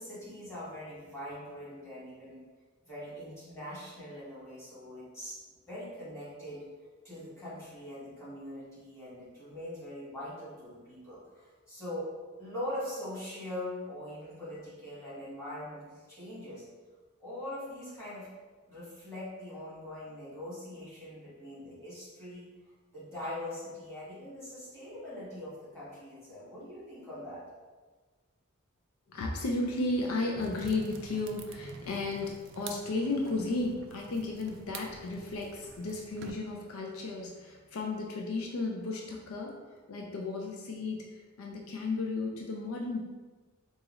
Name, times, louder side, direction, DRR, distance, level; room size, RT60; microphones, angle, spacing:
voice 1, 0.0-2.4 2.9-6.6 7.0-12.1 12.4-16.6 17.2-18.3 18.7-22.5 22.9-27.4, left 1 dB, 15° left, -10 dB, 1.4 m, -42 dB
voice 2, 29.1-39.6 39.9-43.0, left 2 dB, 80° left, 0 dB, 0.4 m, -34 dB
sound 1, 30.4-36.3, right 5 dB, 55° right, 0.3 m, -48 dB
3.9 x 2.4 x 3.0 m, 1.3 s
head